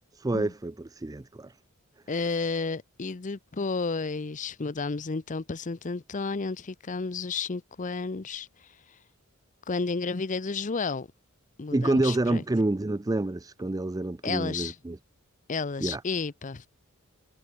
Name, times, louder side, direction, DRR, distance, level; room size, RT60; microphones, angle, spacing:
voice 1, 0.1-1.6 11.7-15.0 15.8-16.0, right 2 dB, 15° right, 0.4 m, -28 dB
voice 2, 2.1-8.5 9.7-11.1 11.6-12.4 14.2-14.7 15.5-16.7, left 4 dB, 35° left, 0.6 m, -32 dB
head